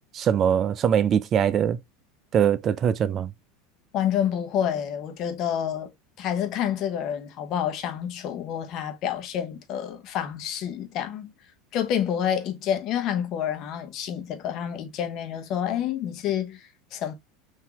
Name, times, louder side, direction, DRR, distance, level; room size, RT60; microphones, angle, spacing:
voice 1, 0.1-1.8 2.3-3.3, right 8 dB, 40° right, 0.4 m, -22 dB
voice 2, 3.9-5.9 6.2-11.3 11.7-17.1, left 9 dB, 50° left, 0.9 m, -28 dB
3.9 x 2.7 x 2.9 m
hypercardioid pair, 85°, 0 cm